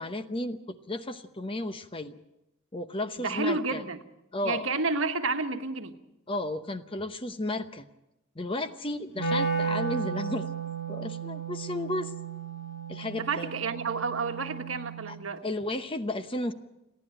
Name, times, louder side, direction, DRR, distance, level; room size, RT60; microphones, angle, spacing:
voice 1, 0.0-2.2 2.7-3.8 4.3-4.8 6.3-7.9 8.4-10.5 10.9-12.1 12.9-13.5 15.1-15.2 15.4-16.5, left 1 dB, 25° left, 0.8 m, -33 dB
voice 2, 3.2-4.0 4.4-6.0 13.2-15.4, right 3 dB, 75° right, 1.4 m, -30 dB
Wind instrument woodwind instrument, 9.2-15.2, right 5 dB, 45° left, 4.1 m, -34 dB
30.0 x 10.5 x 9.0 m
head